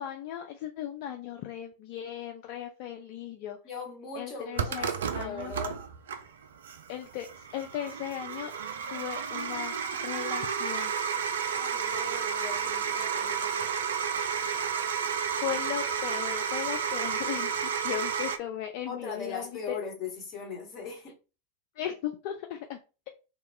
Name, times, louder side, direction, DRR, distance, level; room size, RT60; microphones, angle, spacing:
voice 1, 0.0-3.6 4.1-5.5 6.9-8.5 8.9-10.9 15.4-19.8 21.8-22.8, left 11 dB, 45° left, 5 dB, 0.3 m, -37 dB
voice 2, 3.6-4.8 5.1-5.8 11.5-13.7 18.9-21.1, left 4 dB, 25° left, 0 dB, 1.2 m, -39 dB
sound 1, 4.6-18.4, right 7 dB, 60° right, 0.3 m, -31 dB
2.9 x 2.3 x 2.7 m, 0.32 s
figure-of-eight pair, 90°, 0 cm